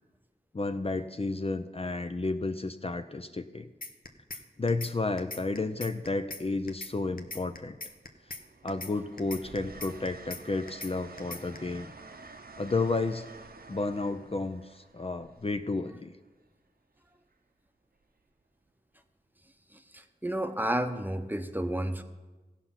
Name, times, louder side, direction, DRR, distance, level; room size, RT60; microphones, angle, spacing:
voice 1, 0.5-3.7 4.6-7.8 8.6-11.9 12.6-13.3 13.7-16.2, left 3 dB, 35° left, 8 dB, 0.5 m, -32 dB
sound 1, 3.8-4.4 4.7-4.9 5.2-6.4 6.7-6.9 7.2-8.4 8.7-8.9 9.2-10.4 10.7-10.9 11.2-11.6, left 3 dB, 60° left, 0.9 m, -40 dB
Train, 6.5-7.2 7.6-16.4 18.0-18.2, right 3 dB, 65° right, 0.8 m, -50 dB
voice 2, 19.7-22.0, right 1 dB, 10° right, 7 dB, 0.8 m, -31 dB
16.0 x 5.6 x 5.7 m, 1.2 s
wide cardioid pair, 45°, 17 cm